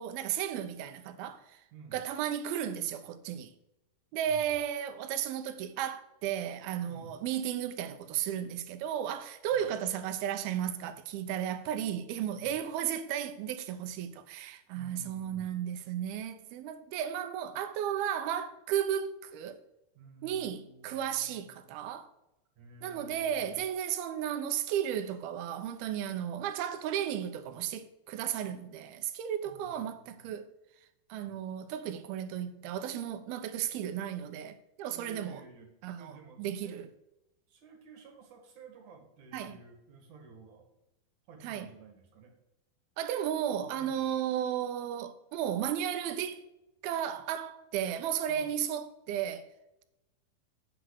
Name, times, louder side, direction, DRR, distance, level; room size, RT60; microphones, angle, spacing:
voice 1, 0.0-1.6 1.9-3.5 4.1-19.6 20.2-22.1 22.8-30.5 31.1-35.4 35.8-36.1 36.4-36.9 39.3-39.6 41.4-41.7 43.0-46.4 46.8-49.5, right 10 dB, 80° right, 2.7 m, -34 dB
voice 2, 1.7-2.0 4.3-4.5 6.9-7.2 9.5-9.7 12.3-12.5 14.7-15.5 19.9-21.8 22.6-23.6 29.4-30.3 31.2-31.8 34.9-36.8 37.5-40.7 41.3-42.3 43.8-44.1 48.3-48.5, right 3 dB, 60° right, 3.1 m, -53 dB
9.1 x 6.0 x 6.4 m
omnidirectional pair, 4.4 m